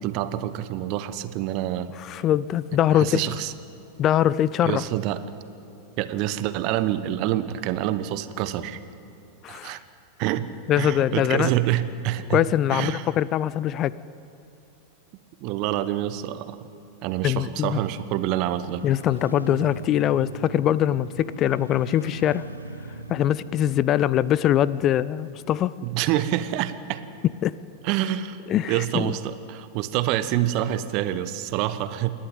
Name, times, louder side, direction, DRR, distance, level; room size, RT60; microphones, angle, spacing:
voice 1, 0.0-1.9 2.9-3.5 4.6-5.2 6.0-8.8 9.5-9.8 10.2-10.5 10.8-13.1 15.4-16.7 17.0-18.8 25.8-27.0 27.8-28.4 28.7-32.1, right 13 dB, 40° right, 13 dB, 1.0 m, -27 dB
voice 2, 2.0-3.2 4.0-4.8 9.4-9.8 10.7-11.5 12.3-13.9 17.2-17.8 18.8-22.4 23.1-25.7 27.4-27.5 28.5-29.1, left 11 dB, 35° left, 19 dB, 0.4 m, -22 dB
Motorcycle, 18.3-28.4 28.7-28.8, right 2 dB, 85° right, 0.9 m, -41 dB
28.0 x 11.5 x 9.2 m, 2.7 s
figure-of-eight pair, 90°, 0 cm